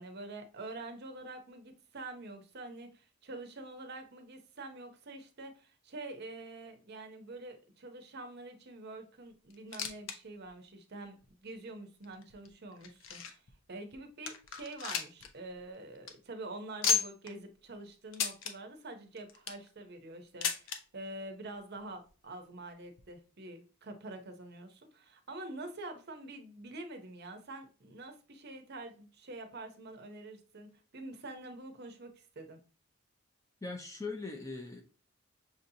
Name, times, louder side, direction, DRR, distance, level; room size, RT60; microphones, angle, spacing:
voice 1, 0.0-11.2 11.4-13.4 13.7-32.6, right 2 dB, 45° right, 0.7 m, -46 dB
sound 1, 9.5-10.2 10.5-10.6 11.2-11.3 12.0-13.5 13.9-14.0 14.3-15.3 15.6-15.7 15.9-16.1 16.8-17.3 18.1-18.5 19.2-19.7 20.4-20.8 21.8-21.9 22.1-22.2 23.0-23.1, left 6 dB, 60° left, 0.6 m, -33 dB
voice 2, 33.6-34.8, left 3 dB, 15° left, 0.4 m, -40 dB
6.1 x 2.7 x 2.7 m
head